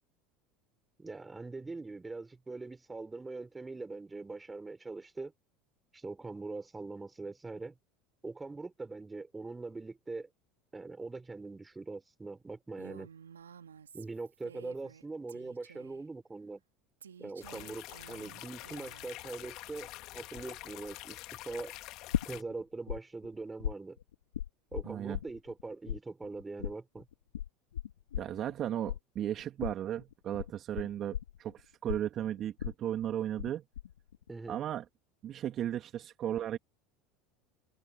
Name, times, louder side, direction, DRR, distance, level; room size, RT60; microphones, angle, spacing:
voice 1, 1.0-5.3 5.9-7.8 8.2-10.3 10.7-13.1 13.9-16.6 17.2-19.9 20.1-21.7 22.2-24.0 24.7-27.1 34.3-34.6, right 3 dB, 15° right, 4.2 m, -42 dB
Female speech woman speaking, 12.8-15.0 15.3-16.0 17.0-19.1, right 7 dB, 85° right, 2.1 m, -53 dB
sound 1, 17.4-22.4, left 18 dB, 55° left, 2.1 m, -46 dB
sound 2, 22.1-23.0 23.2-25.6 25.9-33.5 33.8-34.3, left 10 dB, 85° left, 2.9 m, -37 dB
voice 2, 24.8-25.2 28.2-33.6 34.5-34.8 35.2-36.6, right 11 dB, 45° right, 2.7 m, -35 dB
hypercardioid pair, 75°, 0 cm